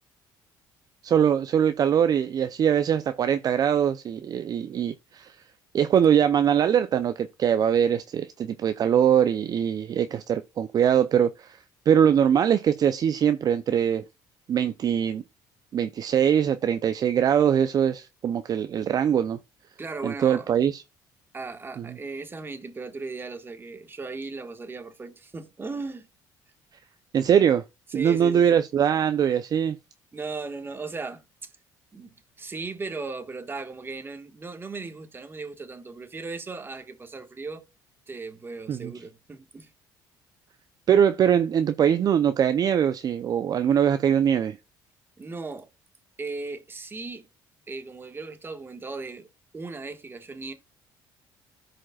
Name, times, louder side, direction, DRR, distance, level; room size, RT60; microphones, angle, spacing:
voice 1, 1.0-5.3 5.7-11.6 11.9-14.0 14.5-15.2 15.7-19.4 20.0-20.8 21.8-21.9 27.1-27.6 27.9-29.8 38.7-38.9 40.9-44.6, right 8 dB, 45° right, 0.5 m, -22 dB
voice 2, 19.8-20.5 21.3-26.1 27.9-28.6 30.1-31.5 31.9-37.6 38.1-39.7 45.2-45.7 46.2-47.3 47.7-49.3 49.5-50.5, right 3 dB, 25° right, 1.5 m, -37 dB
15.0 x 5.1 x 2.3 m
supercardioid pair, 90°, 9 cm